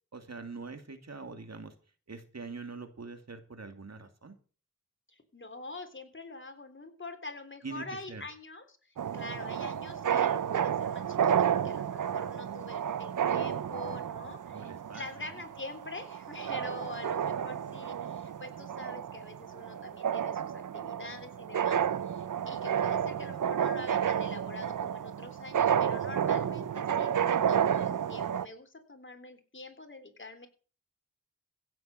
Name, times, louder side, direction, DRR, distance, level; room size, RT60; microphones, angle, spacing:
voice 1, 0.1-1.7 2.1-4.4 7.6-8.2 14.5-15.0 17.2-17.5, right 4 dB, 55° right, 7 dB, 2.6 m, -43 dB
voice 2, 5.1-8.8 9.1-30.5, left 2 dB, 40° left, 7 dB, 3.5 m, -45 dB
sound 1, 9.0-28.5, right 8 dB, 75° right, 0.7 m, -31 dB
16.0 x 7.7 x 6.6 m, 0.38 s
cardioid pair, 55°, 31 cm